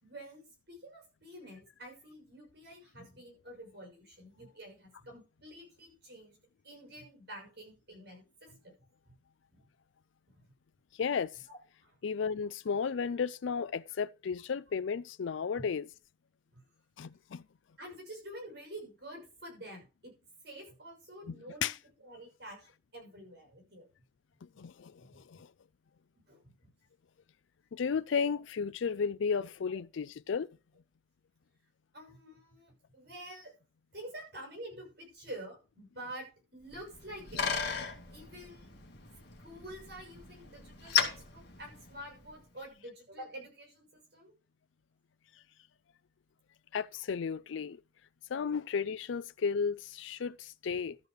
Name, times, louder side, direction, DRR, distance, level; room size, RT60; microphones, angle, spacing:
voice 1, 0.0-6.4 6.6-8.7 9.1-9.2 9.5-9.6 10.3-10.5 11.5-11.6 11.8-12.0 15.6-15.7 16.5-16.6 17.8-20.1 20.4-21.7 22.0-23.8 25.0-25.2 26.3-26.5 31.9-33.5 33.9-37.5 38.1-38.7 39.4-44.3, right 1 dB, 55° right, 6.2 m, -48 dB
voice 2, 11.0-11.3 12.0-15.8 17.0-17.4 21.6-21.8 24.6-25.5 27.7-30.5 46.7-47.8 48.3-51.0, left 6 dB, 80° left, 0.4 m, -33 dB
Bicycle, 36.7-42.4, left 6 dB, 55° left, 2.2 m, -36 dB
13.0 x 4.8 x 6.4 m
head